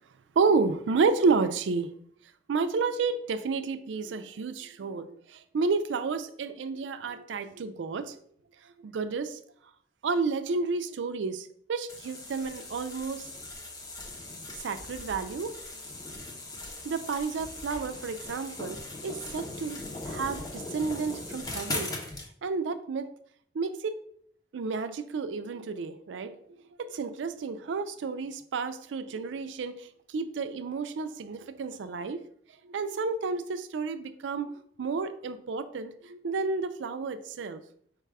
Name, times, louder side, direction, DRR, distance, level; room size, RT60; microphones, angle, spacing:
voice 1, 0.4-1.9 2.5-8.2 8.8-9.4 10.0-13.3 14.6-15.6 16.8-18.8 19.0-21.9 22.4-23.1 23.5-23.9 24.5-26.4 26.8-32.2 32.6-34.5 34.8-37.6, right 4 dB, 90° right, 10 dB, 0.4 m, -31 dB
sound 1, 11.9-22.3, left 2 dB, 20° left, 0.7 m, -39 dB
4.7 x 2.3 x 4.7 m, 0.63 s
head